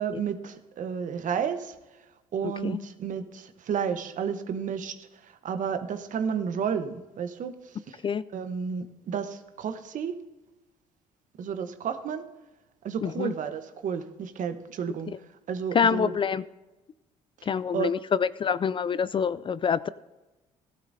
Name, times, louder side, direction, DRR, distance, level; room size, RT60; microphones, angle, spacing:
voice 1, 0.0-1.7 2.3-7.5 7.9-8.0 8.3-10.2 11.4-12.2 12.8-15.1 15.5-16.1 17.4-17.5 17.7-17.9, right 7 dB, 55° right, 9 dB, 1.0 m, -31 dB
voice 2, 2.4-2.8 8.0-8.2 13.0-13.3 15.1-15.2 15.7-16.4 17.4-19.9, left 6 dB, 35° left, 18 dB, 0.4 m, -26 dB
15.5 x 11.5 x 2.7 m, 1.1 s
supercardioid pair, 65°, 16 cm